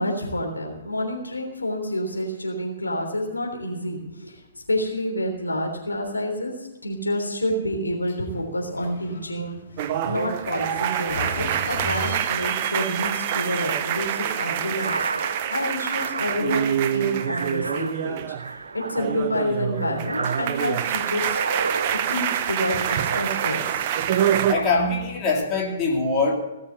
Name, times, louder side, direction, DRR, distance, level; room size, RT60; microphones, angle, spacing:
voice 1, 0.0-6.5 6.8-9.6 10.1-15.1 15.5-16.7 16.9-18.2 18.7-21.4 21.9-24.1, equal, 85° left, 0 dB, 3.4 m, -28 dB
Sliding door, 8.0-12.7, equal, 60° left, 3.1 m, -38 dB
sound 1, 9.8-18.5 18.8-24.5, right 10 dB, 40° right, 0.8 m, -26 dB
sound 2, 14.7-23.7 24.1-25.2, right 3 dB, 75° right, 0.6 m, -34 dB
voice 2, 24.5-26.3, left 3 dB, 25° left, -2 dB, 2.9 m, -23 dB
17.5 x 6.7 x 8.0 m, 1.0 s
figure-of-eight pair, 120°, 0 cm